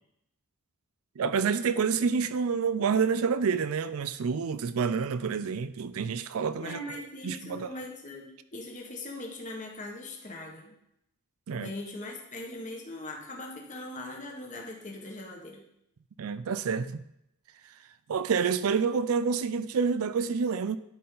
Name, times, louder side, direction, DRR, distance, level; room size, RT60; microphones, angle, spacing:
voice 1, 1.2-6.8 7.2-7.7 11.5-11.7 16.2-17.0 18.1-20.8, right 5 dB, 70° right, 0.4 m, -28 dB
voice 2, 6.6-10.7 11.5-15.6, left 1 dB, 35° left, 1.4 m, -40 dB
12.0 x 4.3 x 3.9 m
head